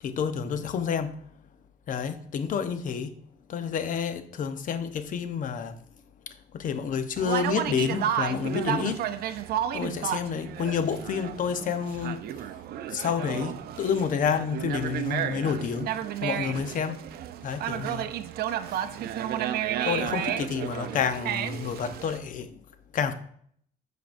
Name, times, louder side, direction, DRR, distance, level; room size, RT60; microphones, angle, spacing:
voice 1, 0.0-1.2 1.9-3.1 3.5-5.8 6.3-9.0 9.7-12.5 12.9-15.9 16.2-17.0 17.4-18.1 18.7-18.8 19.8-22.6 22.9-23.1, left 7 dB, 50° left, 0.9 m, -29 dB
Conversation, 7.2-22.2, right 11 dB, 65° right, 0.6 m, -32 dB
14.0 x 5.2 x 2.6 m
cardioid pair, 110°, 17 cm